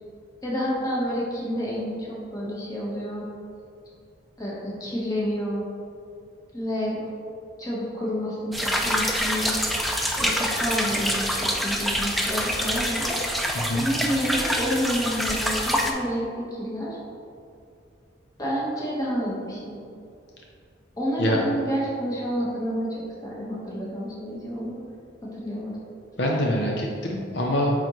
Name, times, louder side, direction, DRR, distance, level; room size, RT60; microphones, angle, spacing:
voice 1, 0.4-3.3 4.4-5.7 6.5-7.0 7.6-9.6 10.1-13.2 13.8-17.0 18.4-19.8 21.0-24.8 25.2-25.7, equal, 20° left, -6 dB, 1.3 m, -29 dB
sound 1, 8.5-15.9, equal, ahead, 0.4 m, -26 dB
voice 2, 13.5-13.9 21.2-21.4 26.2-27.7, left 1 dB, 60° left, -2 dB, 0.7 m, -24 dB
8.8 x 3.8 x 3.1 m, 2.5 s
head